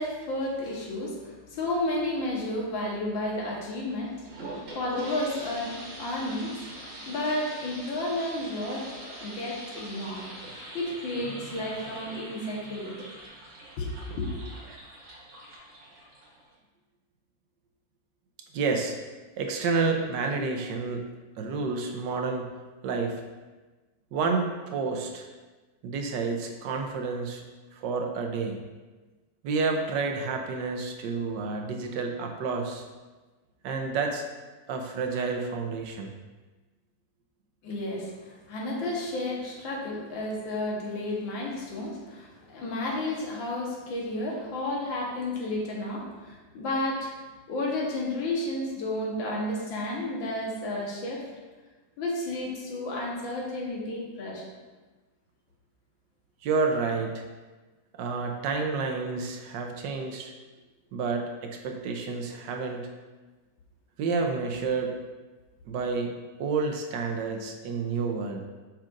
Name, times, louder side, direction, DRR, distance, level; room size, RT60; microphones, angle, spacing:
voice 1, 0.0-4.2 4.4-6.5 7.1-10.3 10.7-12.9 13.8-14.4 37.6-47.1 47.5-51.2 52.0-54.4 56.8-56.9, left 1 dB, 85° left, -2 dB, 2.0 m, -32 dB
sound 1, 4.0-16.6, right 1 dB, 85° right, 2.1 m, -43 dB
voice 2, 18.5-19.0 19.4-21.0 21.4-22.5 22.8-23.2 24.1-25.3 25.8-27.4 27.8-28.6 29.4-32.8 33.6-34.2 34.7-36.1 56.4-57.2 58.0-60.3 60.9-62.9 64.0-64.9 65.7-66.1 66.4-68.4, right 4 dB, 70° right, 3 dB, 1.3 m, -29 dB
7.4 x 5.8 x 2.5 m, 1.2 s
omnidirectional pair, 2.1 m